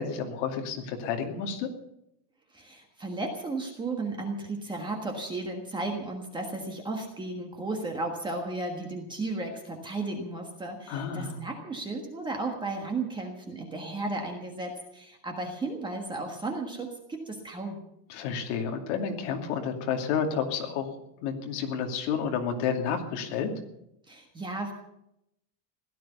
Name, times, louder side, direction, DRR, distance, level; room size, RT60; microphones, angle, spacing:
voice 1, 0.0-1.7 10.9-11.4 18.1-20.8 21.2-23.5, left 6 dB, 45° left, 3 dB, 2.6 m, -30 dB
voice 2, 2.5-17.8 24.1-24.7, right 2 dB, 10° right, 2 dB, 1.4 m, -34 dB
16.5 x 12.5 x 6.9 m, 0.82 s
supercardioid pair, 175°, 49 cm